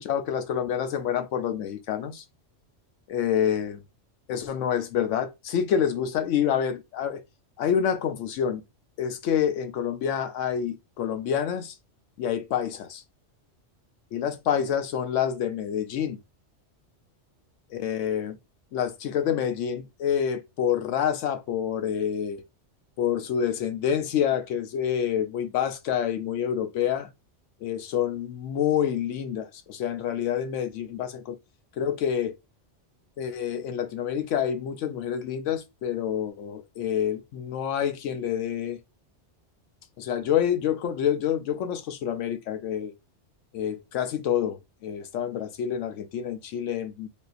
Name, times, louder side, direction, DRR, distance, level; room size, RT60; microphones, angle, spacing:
voice 1, 0.0-2.2 3.1-3.8 4.3-7.2 7.6-8.6 9.0-11.8 12.2-13.0 14.1-16.2 17.7-18.4 18.7-22.4 23.0-27.1 27.6-31.4 31.8-32.4 33.2-38.8 40.0-42.9 43.5-47.1, left 9 dB, 85° left, 1.0 m, -27 dB
3.6 x 2.7 x 2.4 m
omnidirectional pair, 1.2 m